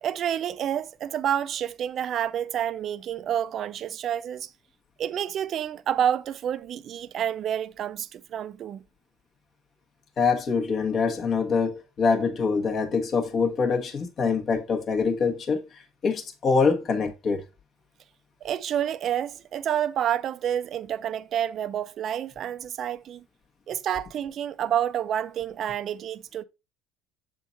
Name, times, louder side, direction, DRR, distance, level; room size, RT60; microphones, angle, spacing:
voice 1, 0.0-4.5 5.0-8.8 18.4-23.2 23.7-26.4, right 10 dB, 45° right, 0.5 m, -29 dB
voice 2, 10.2-17.4, left 5 dB, 40° left, 1.3 m, -25 dB
7.1 x 3.8 x 4.0 m
supercardioid pair, 110°, 0 cm